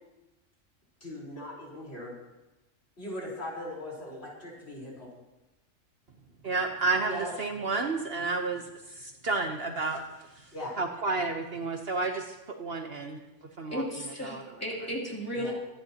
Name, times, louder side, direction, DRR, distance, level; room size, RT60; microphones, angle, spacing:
voice 1, 1.0-2.2 3.0-5.1 7.1-7.3 10.5-10.8 15.3-15.5, left 1 dB, 50° left, -4 dB, 4.7 m, -39 dB
voice 2, 6.4-8.6 8.9-10.0 10.8-13.2 13.6-13.8 14.2-14.4, right 3 dB, 50° right, 3 dB, 1.2 m, -31 dB
voice 3, 13.7-15.5, equal, 10° left, -4 dB, 3.4 m, -34 dB
23.5 x 11.0 x 2.9 m, 1.0 s
omnidirectional pair, 1.3 m